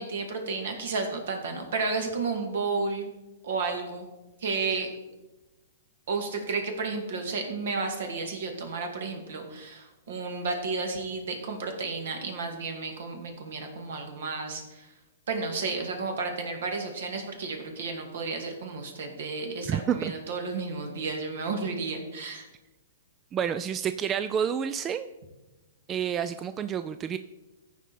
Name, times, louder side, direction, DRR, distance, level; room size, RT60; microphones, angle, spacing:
voice 1, 0.0-3.1 3.4-4.1 4.4-4.9 6.1-14.9 15.3-22.5, right 4 dB, 70° right, 4 dB, 2.2 m, -32 dB
voice 2, 19.7-20.1 23.3-25.1 25.9-27.2, right 8 dB, 25° right, 11 dB, 0.3 m, -29 dB
14.5 x 4.9 x 4.2 m, 1.1 s
hypercardioid pair, 135°, 0 cm